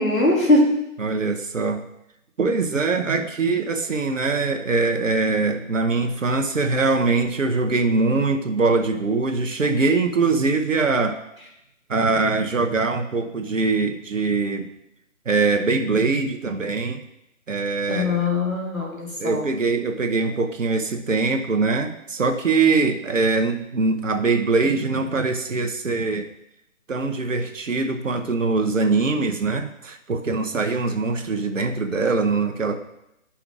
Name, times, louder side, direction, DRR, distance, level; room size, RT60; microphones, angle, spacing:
voice 1, 0.0-0.8 17.9-19.4, left 2 dB, 85° left, -2 dB, 2.0 m, -21 dB
voice 2, 1.0-1.9 2.4-11.2 11.9-14.7 15.3-17.0 17.5-18.3 19.2-26.3 26.9-32.8, right 3 dB, 70° right, 5 dB, 0.9 m, -22 dB
11.0 x 5.7 x 2.4 m, 0.85 s
figure-of-eight pair, 145°, 40 cm